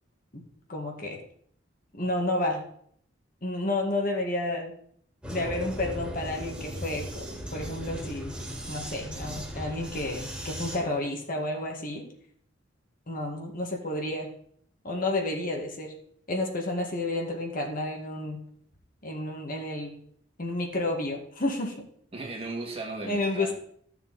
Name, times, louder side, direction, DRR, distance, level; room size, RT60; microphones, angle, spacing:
voice 1, 0.7-1.2 1.9-2.6 3.4-4.7 5.3-7.2 7.5-8.4 8.7-12.0 13.1-14.3 14.8-15.9 16.3-18.4 19.0-19.9 20.4-21.9 23.0-23.5, left 2 dB, 50° left, 2 dB, 1.8 m, -31 dB
Vehicle, 5.2-10.8, equal, 5° right, 2.2 m, -37 dB
voice 2, 22.1-23.5, right 2 dB, 30° right, 0 dB, 2.0 m, -36 dB
13.5 x 6.8 x 4.1 m, 0.65 s
head